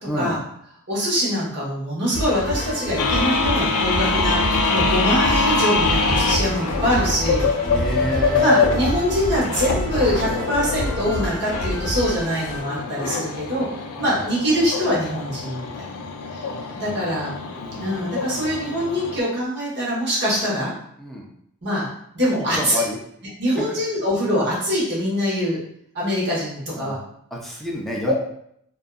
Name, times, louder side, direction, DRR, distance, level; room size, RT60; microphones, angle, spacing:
voice 1, 0.1-0.4 7.7-8.6 12.7-13.0 14.0-14.3 16.5-16.9 17.3-17.8 21.0-21.3 22.5-23.0 23.6-23.7 26.8-27.0 27.3-28.1, equal, ahead, -3 dB, 0.4 m, -30 dB
voice 2, 0.9-7.5 8.4-13.7 14.0-16.0 16.3-16.4 16.7-17.3 17.8-20.7 21.6-21.9 22.1-22.8 23.4-25.6 25.9-27.0 28.1-28.2, equal, 50° right, -6 dB, 1.1 m, -23 dB
sound 1, 2.1-12.6, equal, 55° left, 0.8 m, -28 dB
sound 2, 3.0-19.2, left 4 dB, 80° left, 0.4 m, -25 dB
2.6 x 2.3 x 2.3 m, 0.70 s
head